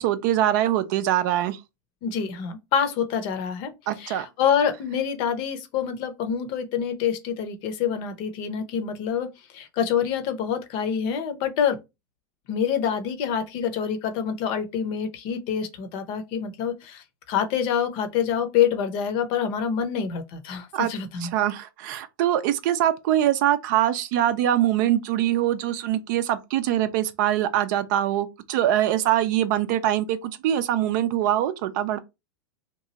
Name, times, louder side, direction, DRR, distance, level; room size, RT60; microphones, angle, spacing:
voice 1, 0.0-1.6 3.9-4.3 20.7-20.9 21.2-32.0, right 12 dB, 60° right, 0.4 m, -23 dB
voice 2, 2.0-3.7 4.0-11.8 12.5-21.3, left 8 dB, 50° left, 0.7 m, -26 dB
3.0 x 2.3 x 2.8 m
hypercardioid pair, 110°, 11 cm